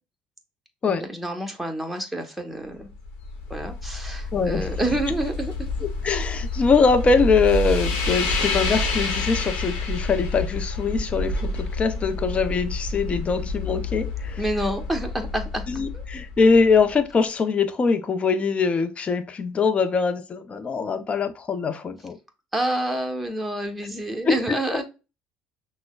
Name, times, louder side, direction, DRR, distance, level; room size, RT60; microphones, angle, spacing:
voice 1, 1.0-2.9 3.5-5.7 14.4-16.0 22.5-24.8, right 1 dB, 5° right, 1.1 m, -28 dB
sound 1, 2.8-17.0, left 3 dB, 75° left, 1.0 m, -29 dB
voice 2, 4.3-4.7 6.0-14.4 15.7-22.2 24.2-24.4, left 4 dB, 35° left, 0.6 m, -22 dB
5.9 x 2.1 x 2.3 m
hypercardioid pair, 70°, 4 cm